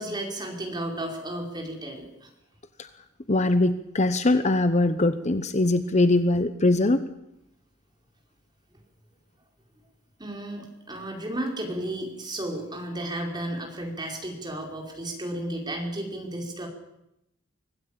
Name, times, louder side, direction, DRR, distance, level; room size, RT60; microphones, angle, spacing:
voice 1, 0.0-2.3 10.2-16.7, right 1 dB, 20° right, 1 dB, 5.0 m, -33 dB
voice 2, 3.3-7.0, left 2 dB, 35° left, 11 dB, 1.0 m, -22 dB
25.0 x 17.0 x 8.9 m, 0.86 s
head